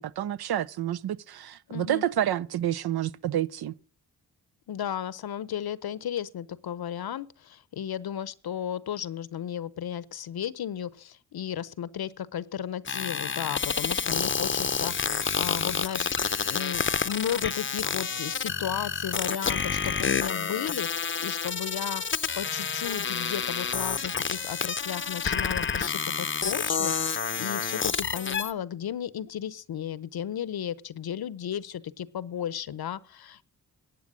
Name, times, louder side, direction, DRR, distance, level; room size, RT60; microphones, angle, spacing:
voice 1, 0.0-3.7, right 11 dB, 65° right, 0.6 m, -29 dB
voice 2, 1.7-2.0 4.7-33.5, left 9 dB, 65° left, 0.8 m, -34 dB
sound 1, 12.9-28.5, left 6 dB, 30° left, 0.6 m, -29 dB
11.5 x 8.5 x 6.1 m
supercardioid pair, 40°, 40 cm